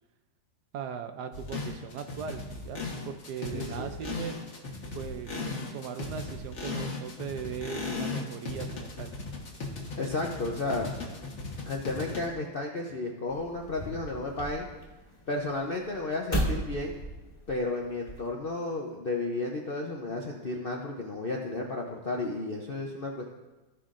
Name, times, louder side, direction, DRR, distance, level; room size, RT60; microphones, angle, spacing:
voice 1, 0.7-4.4 4.9-5.3 5.7-9.1, right 7 dB, 75° right, 8 dB, 1.1 m, -39 dB
sound 1, 1.3-12.2, left 3 dB, 45° left, 1.5 m, -37 dB
voice 2, 3.5-3.9 10.0-10.9 11.7-14.7 15.3-17.0 17.5-23.2, left 2 dB, 60° left, 0 dB, 0.6 m, -33 dB
sound 2, 13.3-18.3, right 1 dB, 20° left, 1.6 m, -36 dB
15.5 x 5.7 x 2.5 m, 1.1 s
omnidirectional pair, 1.9 m